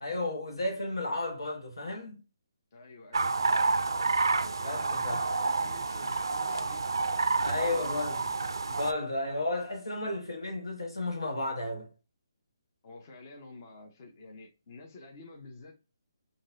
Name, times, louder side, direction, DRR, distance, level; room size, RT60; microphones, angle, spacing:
voice 1, 0.0-2.2 4.6-5.3 7.4-8.2 8.7-11.9, left 2 dB, 90° left, 1.3 m, -33 dB
voice 2, 2.7-3.6 4.6-8.1 12.8-15.7, left 2 dB, 40° left, 0.8 m, -50 dB
sound 1, 3.1-8.9, right 3 dB, 85° right, 0.4 m, -29 dB
3.9 x 2.6 x 2.6 m
hypercardioid pair, 155°, 2 cm